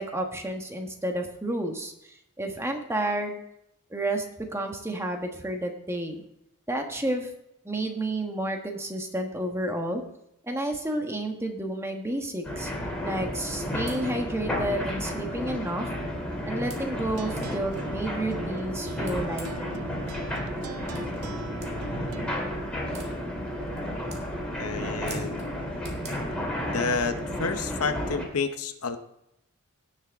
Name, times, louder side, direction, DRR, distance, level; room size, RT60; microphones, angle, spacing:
voice 1, 0.0-1.9 2.4-3.4 3.9-6.2 6.7-7.3 7.6-10.0 10.5-12.7 13.0-15.9 16.4-19.8, right 1 dB, 10° right, 3 dB, 1.4 m, -31 dB
sound 1, 12.4-28.2, equal, 5° left, 2.7 m, -32 dB
sound 2, 13.9-14.0 14.8-14.9 15.4-15.5 16.7-16.8 17.4-17.5 19.0-19.7 21.0-21.1 21.6-21.7 22.9-23.1 23.7-23.8 24.1-24.3 25.1-25.5 25.9-26.1, right 4 dB, 30° right, 1.8 m, -44 dB
sound 3, 17.1-22.4, right 3 dB, 80° right, 0.7 m, -43 dB
voice 2, 24.5-25.4 26.7-29.0, left 4 dB, 70° left, 9 dB, 0.9 m, -30 dB
17.5 x 6.5 x 3.5 m, 0.81 s
head